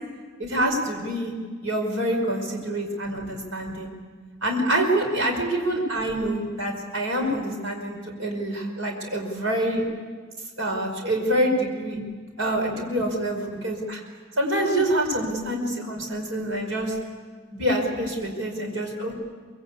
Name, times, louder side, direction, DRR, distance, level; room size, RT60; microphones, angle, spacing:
voice 1, 0.4-1.3 1.6-3.9 4.4-9.8 10.6-12.0 12.4-14.0 14.4-16.9 17.5-19.2, right 1 dB, 80° right, 2 dB, 5.3 m, -26 dB
24.0 x 22.0 x 8.5 m, 1.5 s
head